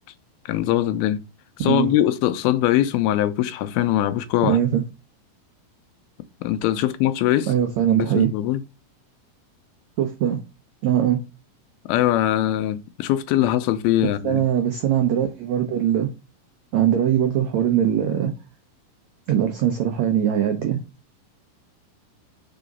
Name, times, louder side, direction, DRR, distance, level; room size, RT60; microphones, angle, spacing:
voice 1, 0.5-1.2 1.6-4.6 6.4-7.5 8.2-8.6 11.9-14.4, left 13 dB, 90° left, 2.5 m, -21 dB
voice 2, 4.4-4.8 7.5-8.3 10.0-10.4 10.8-11.2 14.2-16.1 16.7-18.3 19.3-20.8, right 10 dB, 85° right, 1.5 m, -21 dB
4.9 x 4.7 x 5.2 m
omnidirectional pair, 4.3 m